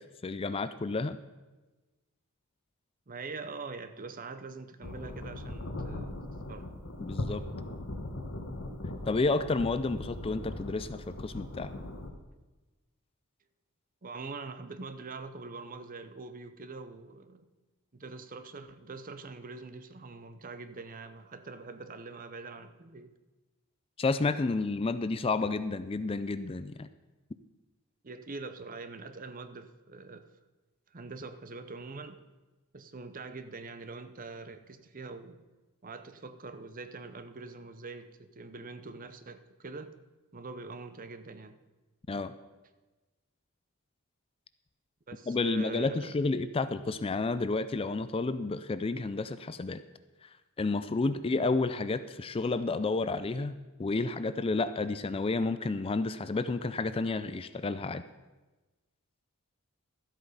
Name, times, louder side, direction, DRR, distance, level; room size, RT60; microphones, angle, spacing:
voice 1, 0.2-1.2 7.0-7.4 9.1-11.7 24.0-26.9 42.1-42.3 45.3-49.8 50.2-50.3 50.6-58.0, left 3 dB, 25° left, 12 dB, 0.4 m, -31 dB
voice 2, 3.1-6.2 6.5-6.7 14.0-17.5 17.9-23.1 28.0-30.3 30.9-32.2 32.7-35.4 35.8-39.9 40.3-41.6 45.1-46.2 51.1-51.2, right 3 dB, 40° right, 10 dB, 0.7 m, -43 dB
sound 1, 4.8-12.1, left 1 dB, 60° left, 1.3 m, -39 dB
12.5 x 8.2 x 5.5 m, 1.2 s
head